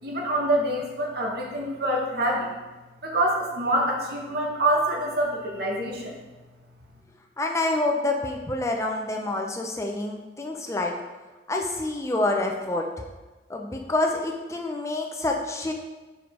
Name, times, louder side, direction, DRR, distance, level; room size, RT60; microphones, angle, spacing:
voice 1, 0.0-2.5 3.0-6.2, right 1 dB, 60° right, -1 dB, 1.3 m, -26 dB
voice 2, 7.4-11.0 11.5-12.9 13.5-15.7, left 2 dB, 15° left, 2 dB, 0.5 m, -27 dB
5.1 x 4.9 x 5.1 m, 1.2 s
head